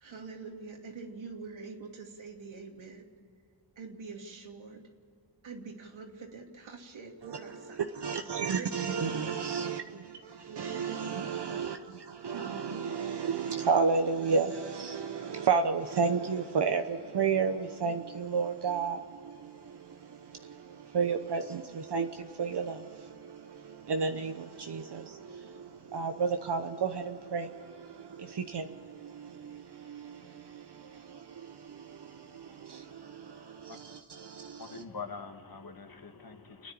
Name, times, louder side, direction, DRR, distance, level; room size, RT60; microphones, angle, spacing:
voice 1, 0.0-3.1 3.8-4.8 5.4-8.1 8.5-9.4 10.5-11.1 12.3-12.8, right 4 dB, 70° right, 2.8 m, -45 dB
voice 2, 7.2-34.8, right 5 dB, 55° right, 1.0 m, -33 dB
voice 3, 34.6-36.7, left 5 dB, 45° left, 1.8 m, -43 dB
29.5 x 10.0 x 8.7 m
wide cardioid pair, 90°, 48 cm